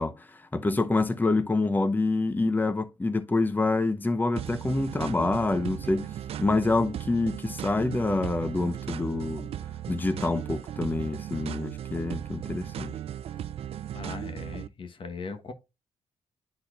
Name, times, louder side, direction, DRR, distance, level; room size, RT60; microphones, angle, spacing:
voice 1, 0.0-6.1 6.4-9.5 9.9-12.9, left 3 dB, 15° left, 0.8 m, -27 dB
sound 1, 4.4-14.7, right 10 dB, 65° right, 0.4 m, -37 dB
voice 2, 13.9-15.5, left 4 dB, 50° left, 1.3 m, -39 dB
10.0 x 4.2 x 2.5 m
cardioid pair, 75°, 11 cm